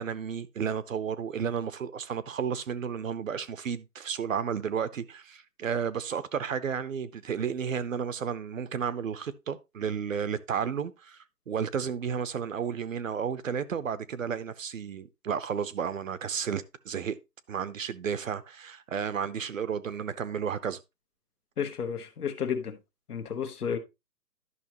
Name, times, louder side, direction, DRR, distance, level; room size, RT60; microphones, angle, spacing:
voice 1, 0.0-17.1 17.5-20.8, right 7 dB, 55° right, 0.7 m, -32 dB
voice 2, 21.6-22.8 23.1-23.8, left 7 dB, 65° left, 1.4 m, -32 dB
11.0 x 6.1 x 2.9 m
hypercardioid pair, 165°, 48 cm